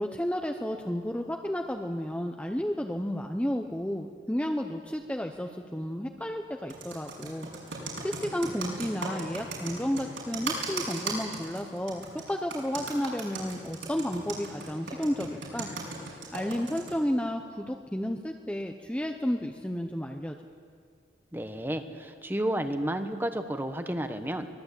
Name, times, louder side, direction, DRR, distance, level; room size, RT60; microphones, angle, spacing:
voice 1, 0.0-15.7 16.3-20.3, equal, 5° left, 3 dB, 0.8 m, -32 dB
Computer keyboard, 6.7-16.9, right 3 dB, 75° right, 6.4 m, -36 dB
voice 2, 21.3-24.5, right 1 dB, 10° right, 7 dB, 1.1 m, -31 dB
24.0 x 19.0 x 8.3 m, 2.1 s
head